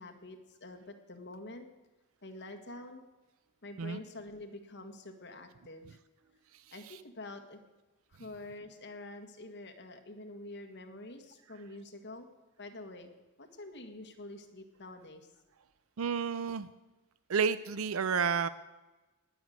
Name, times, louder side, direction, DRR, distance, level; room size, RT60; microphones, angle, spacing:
voice 1, 0.0-1.7 2.2-3.0 3.6-6.0 6.7-7.6 8.1-12.3 12.6-13.1 13.4-15.3, left 2 dB, 50° left, 6 dB, 1.7 m, -47 dB
voice 2, 6.5-7.0 16.0-16.7 17.3-18.5, right 6 dB, 70° right, 14 dB, 0.5 m, -31 dB
19.0 x 6.6 x 9.3 m, 1.1 s
head